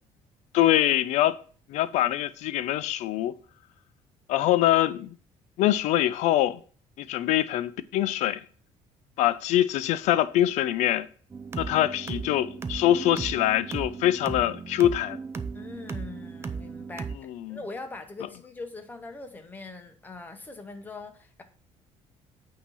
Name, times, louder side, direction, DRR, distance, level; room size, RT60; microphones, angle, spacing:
voice 1, 0.5-1.4 1.7-3.4 4.3-5.1 5.6-6.6 7.0-8.4 9.2-11.1 11.6-15.2 17.3-17.6, left 13 dB, 70° left, 0.5 m, -24 dB
sound 1, 11.3-17.2, right 5 dB, 20° right, 0.4 m, -36 dB
voice 2, 15.5-21.4, left 3 dB, 15° left, 0.9 m, -42 dB
8.6 x 2.9 x 5.4 m
cardioid pair, 140°, 12 cm